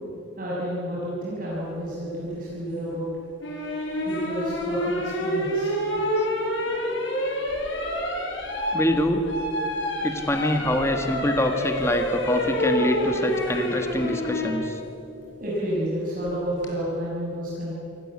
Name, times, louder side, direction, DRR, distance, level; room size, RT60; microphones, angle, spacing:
voice 1, 0.4-3.1 4.0-5.7 15.4-17.7, equal, 45° right, -6 dB, 6.2 m, -30 dB
sound 1, 3.4-14.6 16.3-16.7, equal, 75° left, 6.2 m, -28 dB
voice 2, 8.7-9.3 10.0-14.8, left 1 dB, 15° left, 5 dB, 1.7 m, -25 dB
27.5 x 19.5 x 8.7 m, 3.0 s
head